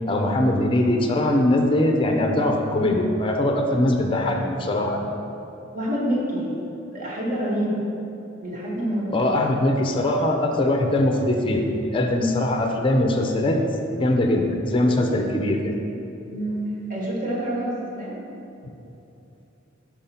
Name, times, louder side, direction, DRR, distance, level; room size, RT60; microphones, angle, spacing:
voice 1, 0.1-5.1 9.1-13.6 13.9-15.7, left 1 dB, 25° left, 3 dB, 0.5 m, -21 dB
voice 2, 5.7-6.5 6.9-7.8 8.4-9.1 16.3-16.6 16.9-18.2, right 1 dB, 45° right, -4 dB, 1.5 m, -27 dB
5.3 x 4.8 x 5.7 m, 2.9 s
head